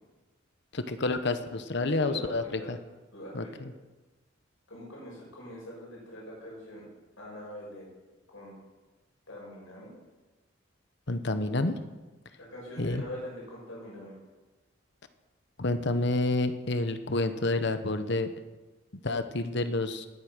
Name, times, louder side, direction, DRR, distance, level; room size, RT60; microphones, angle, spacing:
voice 1, 0.7-2.8 3.3-3.7 11.1-11.8 12.8-13.0 15.6-18.3 19.0-20.1, left 2 dB, 60° left, 10 dB, 1.1 m, -29 dB
voice 2, 1.9-2.7 3.1-3.5 4.7-6.8 7.2-7.9 8.3-8.5 9.3-9.9 12.5-14.2, left 1 dB, 80° left, -5 dB, 6.6 m, -43 dB
19.0 x 8.6 x 6.3 m, 1.2 s
head